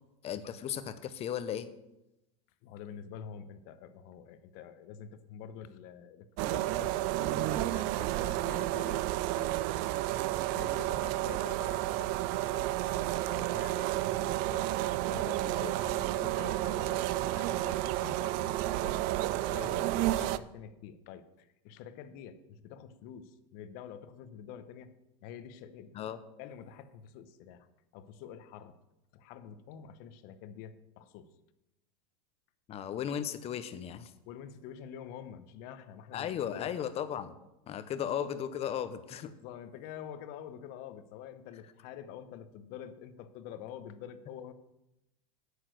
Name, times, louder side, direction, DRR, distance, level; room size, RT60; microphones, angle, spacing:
voice 1, 0.2-1.7 20.1-20.3 25.9-26.2 32.7-34.1 36.1-37.3 37.7-39.3, left 9 dB, 35° left, 12 dB, 1.0 m, -36 dB
voice 2, 2.6-9.1 9.4-9.7 10.5-14.7 15.1-19.1 19.5-24.9 25.2-26.1 26.4-27.7 27.9-28.8 29.1-31.3 34.3-36.7 37.9-38.0 39.2-44.5, left 8 dB, 55° left, 11 dB, 1.1 m, -47 dB
sound 1, 6.4-20.4, right 16 dB, 55° right, 0.5 m, -31 dB
9.4 x 8.7 x 6.3 m, 0.90 s
supercardioid pair, 120°, 18 cm